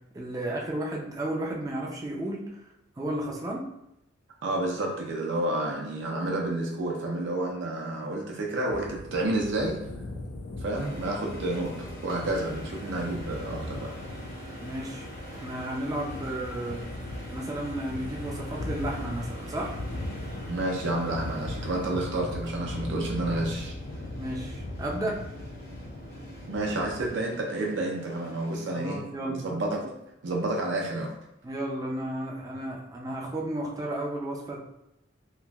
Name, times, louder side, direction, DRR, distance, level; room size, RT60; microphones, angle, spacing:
voice 1, 0.1-3.7 14.6-16.8 17.3-19.8 24.2-25.2 28.7-29.4 31.4-34.6, right 1 dB, 20° right, -2 dB, 0.4 m, -33 dB
voice 2, 4.4-9.8 10.6-13.9 20.5-23.7 26.5-29.0 29.3-29.8 30.2-31.1, right 2 dB, 70° right, -1 dB, 0.5 m, -30 dB
sound 1, 8.7-27.1, left 2 dB, 70° left, 0.4 m, -39 dB
sound 2, 10.7-28.7, equal, 50° left, 0.9 m, -45 dB
3.0 x 2.5 x 2.3 m, 0.84 s
head